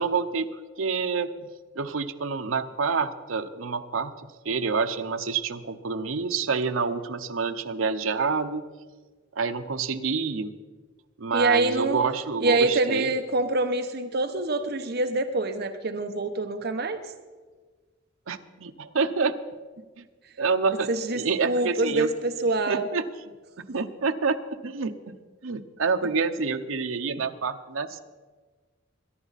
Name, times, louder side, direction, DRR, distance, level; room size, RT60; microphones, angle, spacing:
voice 1, 0.0-8.7 9.3-10.5 11.2-13.1 18.3-19.4 20.0-20.1 20.4-20.9 21.1-22.1 22.7-23.0 23.7-25.2 25.4-28.0, right 5 dB, 80° right, 8 dB, 0.8 m, -28 dB
voice 2, 11.3-12.0 12.4-17.1 20.9-22.9, right 2 dB, 50° right, 8 dB, 0.9 m, -25 dB
22.0 x 11.0 x 4.1 m, 1.4 s
head